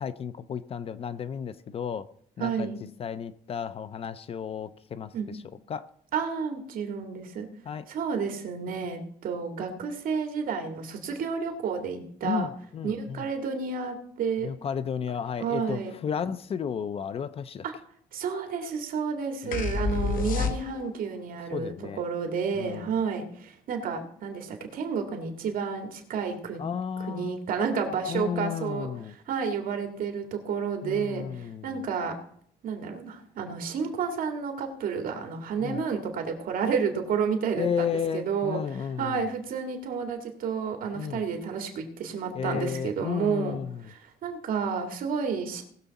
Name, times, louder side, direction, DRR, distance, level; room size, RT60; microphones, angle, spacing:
voice 1, 0.0-2.1 2.4-2.7 3.0-5.1 5.7-5.9 7.7-7.9 12.2-13.2 14.4-17.6 19.4-19.6 20.0-20.6 21.5-22.0 22.6-22.9 26.6-27.4 28.1-29.1 30.8-31.8 35.6-35.8 37.6-39.3 40.9-41.3 42.3-43.8, left 7 dB, 40° left, 0.5 m, -33 dB
voice 2, 2.4-2.8 5.1-5.3 6.1-7.5 7.9-12.5 12.8-14.5 15.4-15.9 17.6-17.7 18.1-26.6 27.1-28.9 29.3-32.1 32.6-38.6 39.0-43.6 43.8-45.6, right 6 dB, 65° right, 2.2 m, -31 dB
sound 1, 19.5-21.1, left 4 dB, 65° left, 1.1 m, -28 dB
19.0 x 6.9 x 4.1 m
cardioid pair, 155°, 16 cm